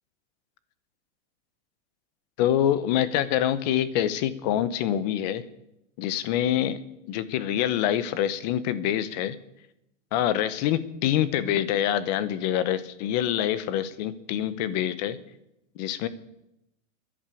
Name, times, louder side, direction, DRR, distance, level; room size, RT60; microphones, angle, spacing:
voice 1, 2.4-5.4 6.0-6.8 7.1-9.4 10.1-15.2 15.8-16.1, left 11 dB, 35° left, 15 dB, 0.9 m, -25 dB
13.5 x 11.0 x 8.4 m, 0.86 s
supercardioid pair, 165°, 36 cm